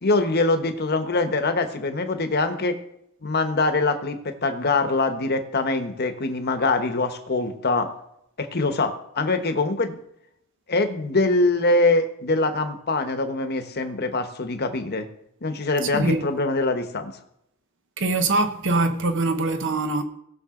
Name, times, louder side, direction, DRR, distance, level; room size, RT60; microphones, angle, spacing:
voice 1, 0.0-2.8 3.2-7.9 8.4-10.0 10.7-15.1 15.4-17.1, left 2 dB, 50° left, 1.2 m, -23 dB
voice 2, 15.9-16.3 18.0-20.0, right 2 dB, 60° right, 1.2 m, -23 dB
19.0 x 6.9 x 3.8 m
head